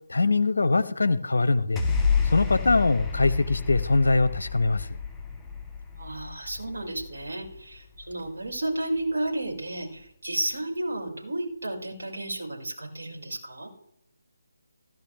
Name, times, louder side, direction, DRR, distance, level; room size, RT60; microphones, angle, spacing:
voice 1, 0.1-1.8 2.2-4.9, left 3 dB, 65° left, 15 dB, 0.7 m, -22 dB
sound 1, 1.8-8.2, left 5 dB, 5° left, 1.5 m, -29 dB
voice 2, 6.0-13.7, right 1 dB, 60° right, -1 dB, 5.6 m, -32 dB
16.0 x 12.0 x 3.4 m, 0.81 s
figure-of-eight pair, 150°, 0 cm